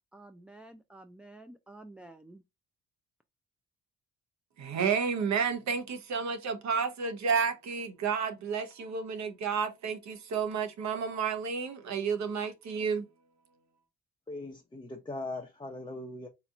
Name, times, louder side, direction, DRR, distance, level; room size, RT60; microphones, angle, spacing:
voice 1, 0.1-2.4, right 2 dB, 5° right, 0.3 m, -51 dB
voice 2, 4.6-13.1, right 6 dB, 65° right, 1.0 m, -31 dB
voice 3, 14.3-16.3, left 2 dB, 15° left, 0.7 m, -40 dB
4.1 x 2.9 x 2.4 m
cardioid pair, 90°, 30 cm